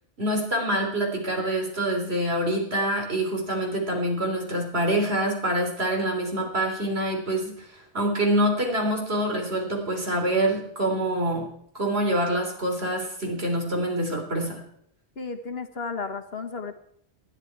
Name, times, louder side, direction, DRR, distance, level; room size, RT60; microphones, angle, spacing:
voice 1, 0.2-11.5 11.7-14.7, right 1 dB, 55° right, 1 dB, 3.8 m, -26 dB
voice 2, 15.2-16.7, left 4 dB, 55° left, 6 dB, 1.5 m, -33 dB
20.0 x 12.0 x 4.7 m, 0.71 s
omnidirectional pair, 1.2 m